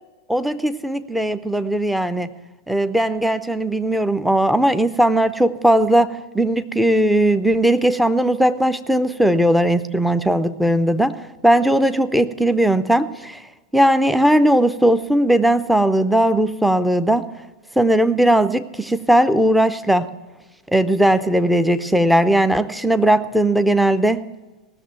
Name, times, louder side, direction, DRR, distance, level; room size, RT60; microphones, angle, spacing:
voice 1, 0.3-2.3 2.7-11.2 11.4-13.4 13.7-17.3 17.8-20.1 20.7-24.2, right 1 dB, ahead, 11 dB, 0.6 m, -18 dB
17.5 x 6.8 x 7.5 m, 1.2 s
figure-of-eight pair, 90°, 0 cm